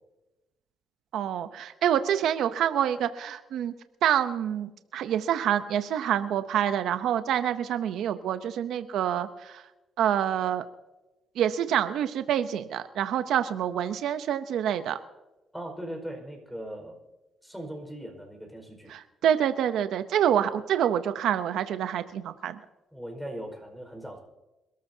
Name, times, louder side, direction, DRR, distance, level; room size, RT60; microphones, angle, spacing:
voice 1, 1.1-3.7 4.0-9.6 10.0-10.6 11.4-15.0 18.9-22.6, right 10 dB, 80° right, 10 dB, 0.7 m, -27 dB
voice 2, 15.5-16.9 17.4-18.9 22.9-24.2, right 1 dB, ahead, 3 dB, 4.9 m, -39 dB
26.0 x 13.5 x 2.8 m, 1.0 s
cardioid pair, 90°, 0 cm